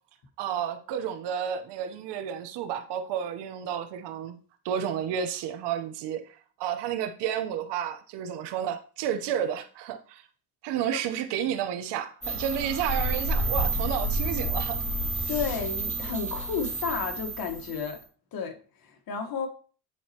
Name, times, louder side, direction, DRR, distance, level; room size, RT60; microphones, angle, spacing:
voice 1, 0.4-4.4 4.6-10.3 10.6-14.8, right 9 dB, 85° right, 1.0 m, -31 dB
sound 1, 12.2-18.0, right 1 dB, 15° left, 3.0 m, -30 dB
voice 2, 15.3-18.0 18.3-19.5, left 6 dB, 60° left, 1.5 m, -32 dB
10.0 x 4.2 x 2.9 m
cardioid pair, 100°, 40 cm